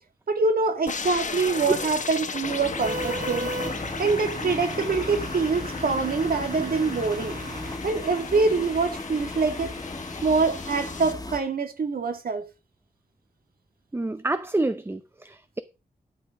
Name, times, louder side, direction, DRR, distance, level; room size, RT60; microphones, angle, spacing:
voice 1, 0.3-3.5 4.0-7.4 7.8-9.7 10.2-12.4, right 4 dB, 70° right, 2.0 m, -25 dB
sound 1, 0.9-11.1, left 5 dB, 55° left, 1.1 m, -36 dB
sound 2, 2.4-11.4, left 2 dB, 25° left, 1.4 m, -37 dB
sound 3, 2.8-7.8, right 2 dB, 55° right, 3.8 m, -36 dB
voice 2, 13.9-15.6, right 2 dB, 15° right, 0.6 m, -28 dB
12.0 x 5.5 x 4.8 m
wide cardioid pair, 115°, 15 cm